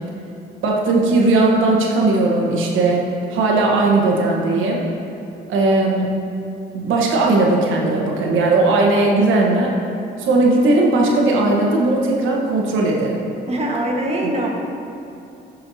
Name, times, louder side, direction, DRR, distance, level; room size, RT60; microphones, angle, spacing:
voice 1, 0.6-3.0 3.3-4.8 5.5-6.1 6.7-9.7 10.2-13.2, right 2 dB, 85° right, -1 dB, 1.3 m, -17 dB
voice 2, 13.5-14.5, right 1 dB, 30° right, -2 dB, 1.5 m, -22 dB
11.5 x 5.6 x 2.8 m, 2.9 s
cardioid pair, 90°, 20 cm